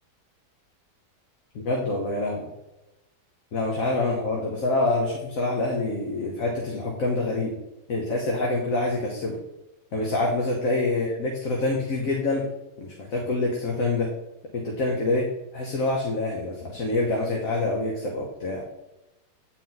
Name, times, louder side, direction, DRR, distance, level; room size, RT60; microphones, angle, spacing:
voice 1, 1.6-2.5 3.5-7.6 7.9-9.4 9.9-12.5 12.8-14.1 14.5-18.7, left 2 dB, 55° left, -1 dB, 1.4 m, -26 dB
8.8 x 4.4 x 3.9 m, 0.94 s
omnidirectional pair, 1.8 m